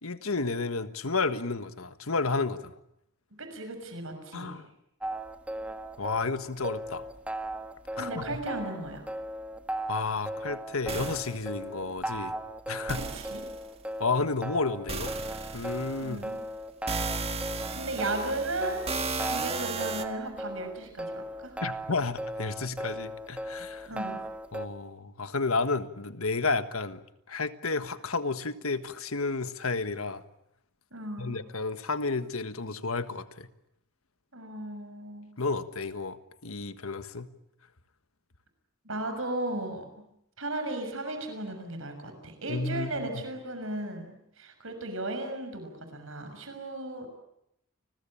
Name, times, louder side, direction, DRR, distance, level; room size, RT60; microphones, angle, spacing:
voice 1, 0.0-2.8 4.3-4.7 6.0-7.1 8.0-8.4 9.9-12.3 12.7-13.0 14.0-15.1 15.5-16.2 21.6-23.9 24.5-27.0 27.3-30.2 31.2-33.5 35.4-37.3 42.5-43.1, left 3 dB, 85° left, 11 dB, 1.5 m, -31 dB
voice 2, 3.4-4.6 7.9-9.1 13.1-13.4 16.0-16.4 17.7-18.8 19.3-21.6 23.9-24.2 30.9-31.4 34.3-35.3 38.8-40.0 40.4-47.1, right 2 dB, 70° right, 7 dB, 6.4 m, -36 dB
sound 1, 5.0-24.7, right 1 dB, 5° right, 1.6 m, -37 dB
sound 2, 10.9-11.4 12.9-13.7 14.9-16.2 16.9-20.0, right 4 dB, 30° right, 1.7 m, -35 dB
29.5 x 21.0 x 8.8 m, 0.78 s
head